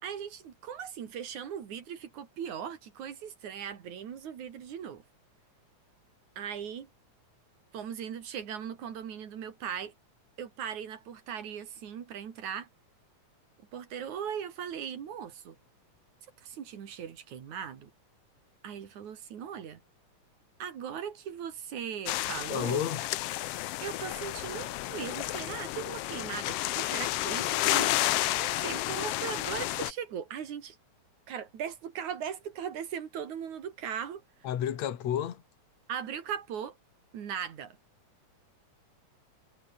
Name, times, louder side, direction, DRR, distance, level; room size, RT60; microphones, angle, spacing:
voice 1, 0.0-5.0 6.4-6.9 7.7-9.9 10.4-12.7 13.7-15.6 16.4-17.9 18.6-19.8 20.6-22.8 23.8-27.9 28.4-30.8 31.3-34.2 35.9-36.8 37.1-37.8, right 8 dB, 70° right, 3.7 m, -39 dB
sound 1, 22.1-29.9, left 16 dB, 85° left, 1.3 m, -31 dB
voice 2, 22.5-23.0 34.4-35.4, left 10 dB, 65° left, 3.0 m, -31 dB
omnidirectional pair, 3.5 m